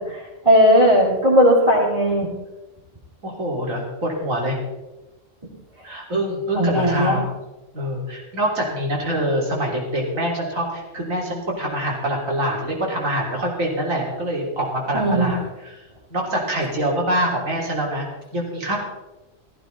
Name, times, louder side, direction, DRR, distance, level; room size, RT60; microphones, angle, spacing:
voice 1, 0.1-2.3 6.5-7.2 14.9-15.3, equal, 25° right, -6 dB, 2.4 m, -17 dB
voice 2, 3.2-4.6 5.8-7.2 7.7-15.8 16.1-18.1 18.3-18.8, right 1 dB, 90° right, -1 dB, 3.8 m, -25 dB
15.0 x 14.5 x 4.0 m, 1.1 s
omnidirectional pair, 1.3 m